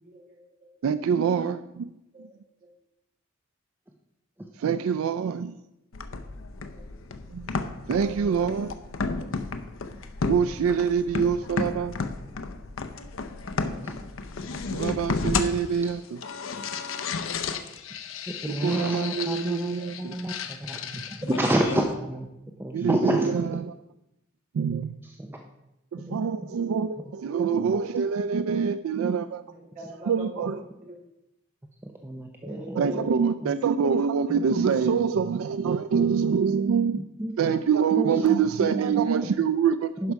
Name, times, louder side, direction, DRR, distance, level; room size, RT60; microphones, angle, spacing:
voice 1, 0.0-0.4 2.1-2.2 6.5-6.8 29.5-30.9 32.4-33.2, right 1 dB, 40° right, -6 dB, 3.8 m, -41 dB
voice 2, 0.8-1.9 4.6-5.6 7.3-7.5 7.9-8.7 10.3-11.9 14.7-16.0 18.6-20.1 22.7-23.3 24.5-25.0 25.9-29.4 30.1-30.6 32.8-37.0 37.4-40.1, right 6 dB, 85° right, 12 dB, 0.3 m, -25 dB
sound 1, 5.9-21.9, left 4 dB, 70° left, 0.6 m, -33 dB
voice 3, 18.3-22.3 22.6-23.3 24.7-24.8 25.0-25.4 26.1-26.2 27.0-27.1 30.4-30.5 31.8-33.1 33.4-33.5 34.3-34.7 37.0-37.6 38.0-39.3 40.0-40.1, right 1 dB, 10° right, 2 dB, 0.6 m, -30 dB
11.0 x 5.4 x 4.6 m, 0.90 s
head